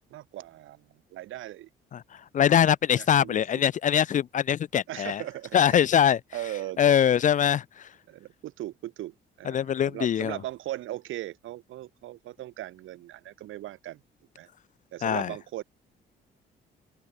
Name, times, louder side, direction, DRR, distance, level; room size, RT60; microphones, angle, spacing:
voice 1, 0.1-1.7 2.9-3.6 4.9-5.8 6.3-7.0 8.1-14.0 14.4-14.5 14.9-15.6, right 14 dB, 85° right, 1.7 m, -38 dB
voice 2, 2.3-5.2 5.5-6.2 6.8-7.9 9.5-10.4 15.0-15.3, left 9 dB, 40° left, 0.4 m, -22 dB
open air
cardioid pair, 90°, 20 cm